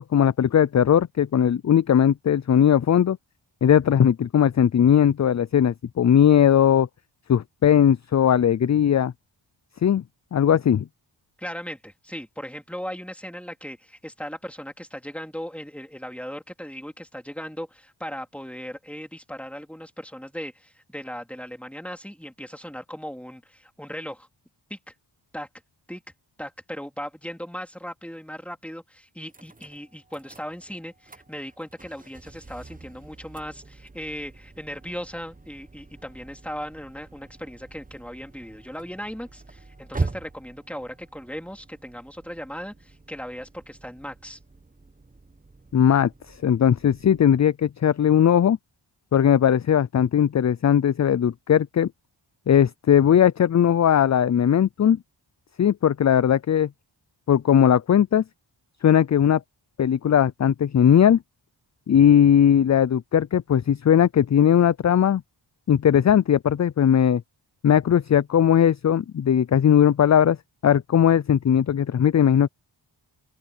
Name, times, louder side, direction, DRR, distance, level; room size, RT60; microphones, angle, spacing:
voice 1, 0.0-3.2 3.6-6.9 7.3-9.1 9.8-10.0 10.3-10.8 45.7-46.1 46.4-48.6 49.1-51.9 52.5-55.0 55.6-56.7 57.3-58.2 58.8-59.4 59.8-61.2 61.9-65.2 65.7-67.2 67.6-70.4 70.6-72.5, left 9 dB, 40° left, 0.4 m, -18 dB
voice 2, 11.4-24.3 24.7-24.8 25.3-25.5 25.9-26.0 26.4-44.4, equal, 5° left, 3.3 m, -37 dB
sound 1, 29.3-47.3, right 3 dB, 15° right, 1.0 m, -41 dB
open air
cardioid pair, 60°, 48 cm